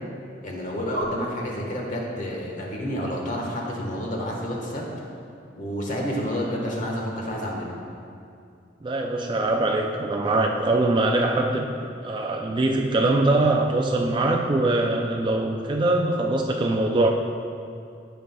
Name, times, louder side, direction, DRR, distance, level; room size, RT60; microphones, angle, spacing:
voice 1, 0.4-4.8 5.5-7.7, equal, 45° left, -1 dB, 1.3 m, -29 dB
voice 2, 8.8-11.8 12.0-17.1, right 2 dB, 25° right, 1 dB, 0.4 m, -22 dB
15.5 x 5.5 x 2.3 m, 2.4 s
head